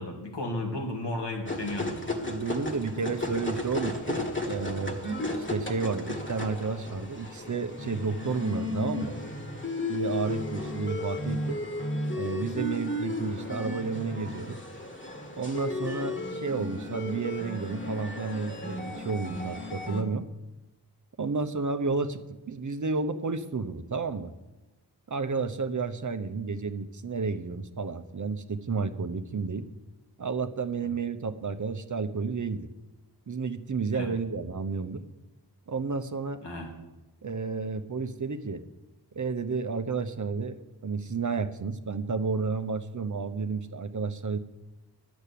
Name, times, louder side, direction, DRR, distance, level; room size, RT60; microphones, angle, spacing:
voice 1, 0.0-2.0 30.8-30.9 33.9-34.1 36.4-36.7, left 1 dB, 85° left, 1 dB, 2.4 m, -34 dB
sound 1, 1.5-20.0, left 2 dB, 30° left, 1.8 m, -34 dB
voice 2, 2.2-5.0 5.4-9.1 9.9-11.6 12.2-14.6 15.4-20.3 21.2-24.3 25.1-29.7 30.2-32.7 33.3-35.0 35.7-36.4 37.2-38.6 39.1-44.4, right 4 dB, 45° right, 10 dB, 0.9 m, -31 dB
11.0 x 7.1 x 8.4 m, 1.1 s
wide cardioid pair, 50°, 40 cm